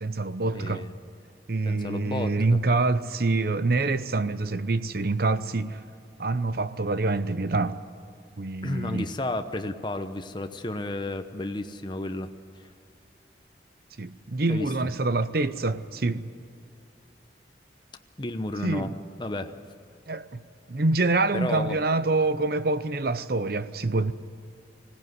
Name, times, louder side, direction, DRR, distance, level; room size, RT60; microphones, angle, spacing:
voice 1, 0.0-0.9 1.5-5.8 6.2-7.7 8.4-9.1 14.0-16.3 18.6-19.0 20.1-20.4 20.7-24.1, right 3 dB, 55° right, 0.8 m, -26 dB
voice 2, 0.5-0.9 1.7-2.6 8.6-12.3 12.6-12.7 14.5-14.7 18.2-18.9 19.2-19.5 21.3-21.8, left 1 dB, 25° left, 0.9 m, -32 dB
20.5 x 17.5 x 9.5 m
head